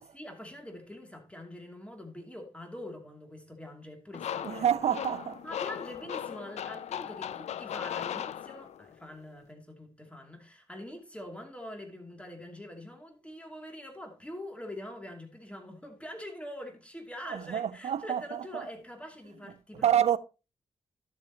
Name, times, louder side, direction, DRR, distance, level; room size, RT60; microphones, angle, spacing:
voice 1, 0.1-5.0 5.4-19.9, left 1 dB, 10° left, 2.6 m, -44 dB
sound 1, 4.1-8.9, left 10 dB, 75° left, 0.4 m, -37 dB
voice 2, 4.4-5.4 17.3-18.7 19.8-20.2, right 10 dB, 70° right, 0.6 m, -28 dB
12.0 x 7.3 x 2.9 m
cardioid pair, 60°, 11 cm